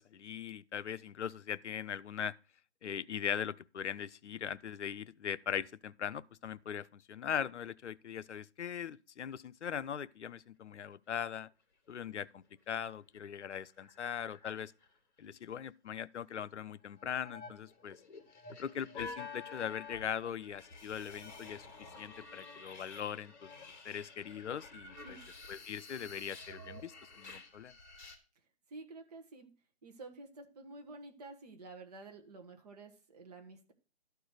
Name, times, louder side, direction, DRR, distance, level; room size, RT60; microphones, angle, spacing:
voice 1, 0.0-2.3 2.8-11.5 11.9-14.7 15.2-18.0 18.6-21.7 22.0-23.5 23.8-25.2 25.5-27.7, left 8 dB, 85° left, 0.6 m, -40 dB
sound 1, 12.0-12.4 12.7-12.8 13.1-14.9 16.9-28.2, left 4 dB, 40° left, 2.8 m, -50 dB
voice 2, 28.7-29.5 29.8-33.7, right 3 dB, 35° right, 1.6 m, -50 dB
12.5 x 4.6 x 6.5 m
hypercardioid pair, 165°, 34 cm